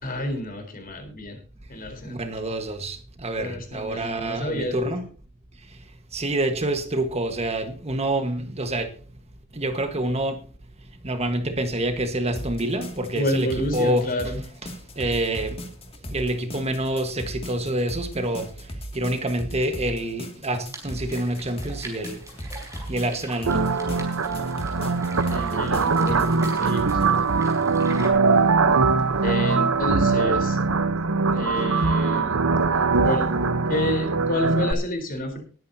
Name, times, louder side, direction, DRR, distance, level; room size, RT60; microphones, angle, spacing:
voice 1, 0.0-1.4 1.7-2.2 3.4-4.8 13.1-14.4 25.3-26.3 26.6-27.0 29.2-30.6 31.3-32.4 33.0-33.3 33.7-35.4, left 1 dB, 45° left, 4.1 m, -29 dB
voice 2, 2.1-5.1 6.1-8.9 9.5-10.4 11.0-14.1 15.0-15.6 16.1-18.5 18.9-22.2 22.9-23.6, right 1 dB, 30° right, 1.5 m, -27 dB
sound 1, 12.3-27.0, equal, 30° left, 2.4 m, -37 dB
sound 2, 20.7-28.1, right 2 dB, 15° right, 5.1 m, -43 dB
sound 3, 23.5-34.7, right 4 dB, 90° right, 1.0 m, -22 dB
20.5 x 10.0 x 2.8 m
head